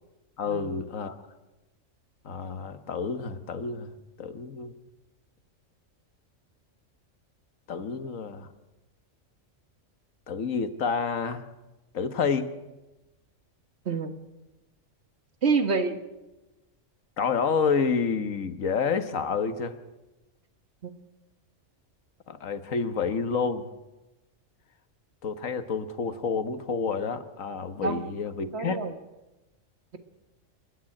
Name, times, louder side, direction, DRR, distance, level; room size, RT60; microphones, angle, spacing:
voice 1, 0.4-1.2 2.2-4.7 7.7-8.5 10.3-11.5 11.9-12.5 17.2-19.8 22.3-23.7 25.2-28.8, left 5 dB, 80° left, 10 dB, 1.7 m, -29 dB
voice 2, 15.4-16.0 20.8-20.9 27.8-28.1 28.4-28.9, right 4 dB, 55° right, 8 dB, 1.8 m, -27 dB
28.5 x 10.5 x 9.8 m, 1.1 s
omnidirectional pair, 1.3 m